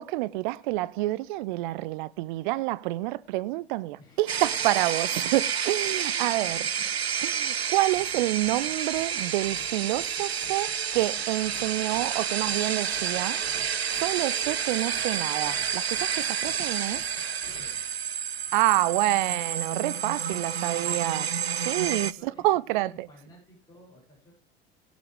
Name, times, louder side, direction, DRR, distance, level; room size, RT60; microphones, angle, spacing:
voice 1, 0.0-6.6 7.2-13.4 13.8-17.0 18.5-21.3 21.6-23.1, right 18 dB, 50° right, 0.7 m, -28 dB
voice 2, 4.0-5.1 6.1-6.7 17.4-17.8 22.2-22.4 22.7-24.3, equal, 15° left, 7.7 m, -53 dB
sound 1, 4.3-22.1, right 8 dB, 85° right, 0.5 m, -30 dB
sound 2, 7.9-17.9, left 7 dB, 50° left, 2.0 m, -53 dB
22.0 x 7.5 x 3.6 m
figure-of-eight pair, 75°, 31 cm